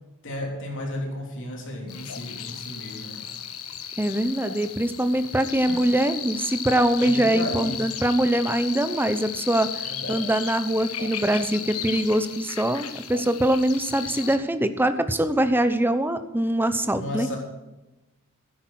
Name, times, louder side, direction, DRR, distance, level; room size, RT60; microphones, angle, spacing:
voice 1, 0.2-3.2 7.0-7.9 9.8-10.2 16.9-17.4, left 1 dB, 60° left, 0 dB, 3.4 m, -34 dB
sound 1, 1.9-14.4, left 8 dB, 75° left, 1.3 m, -35 dB
voice 2, 4.0-17.3, right 1 dB, 10° right, 10 dB, 0.8 m, -23 dB
12.5 x 10.0 x 6.3 m, 1.1 s
head